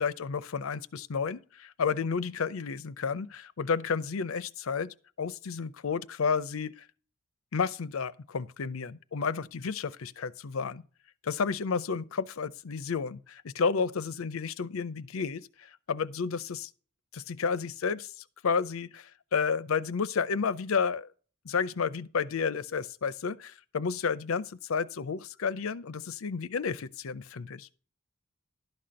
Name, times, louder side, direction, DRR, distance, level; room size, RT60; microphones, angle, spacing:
voice 1, 0.0-6.8 7.5-10.8 11.2-16.7 17.1-18.1 18.4-21.1 21.4-27.7, left 5 dB, 80° left, 0.6 m, -31 dB
11.5 x 4.3 x 6.3 m
head